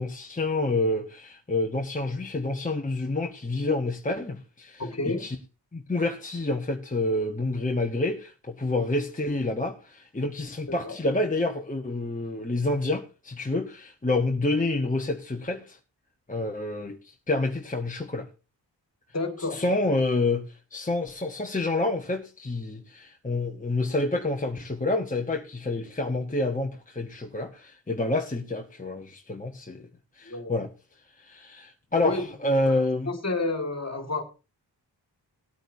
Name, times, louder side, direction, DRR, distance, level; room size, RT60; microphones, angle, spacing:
voice 1, 0.0-5.4 5.7-15.8 16.3-18.3 19.5-29.9 30.2-30.7 31.2-33.1, left 2 dB, 20° left, 1.2 m, -28 dB
voice 2, 4.8-5.3 10.7-11.0 19.1-20.0 30.2-30.6 32.0-34.2, left 2 dB, 35° left, 2.1 m, -31 dB
18.0 x 8.9 x 2.8 m
wide cardioid pair, 65°, 44 cm